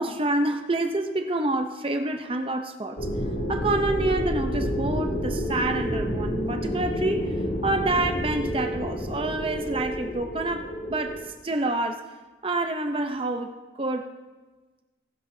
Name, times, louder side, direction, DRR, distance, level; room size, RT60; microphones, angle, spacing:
voice 1, 0.0-3.0 3.5-7.3 7.6-11.2 11.4-12.0 12.4-13.5 13.8-14.1, right 2 dB, 30° right, 6 dB, 0.7 m, -27 dB
sound 1, 3.0-11.2, equal, 60° left, 2.0 m, -29 dB
20.5 x 11.5 x 2.8 m, 1.2 s
head